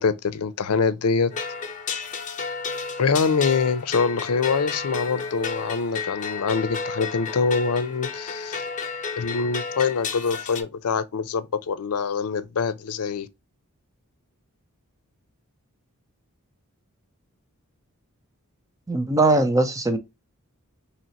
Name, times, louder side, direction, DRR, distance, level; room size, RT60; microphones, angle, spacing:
voice 1, 0.0-1.3 3.0-8.6 9.2-13.3, left 5 dB, 85° left, 0.5 m, -24 dB
sound 1, 1.3-10.6, left 5 dB, 35° left, 0.8 m, -32 dB
voice 2, 18.9-20.0, right 2 dB, 15° right, 0.5 m, -20 dB
4.3 x 2.9 x 2.8 m
head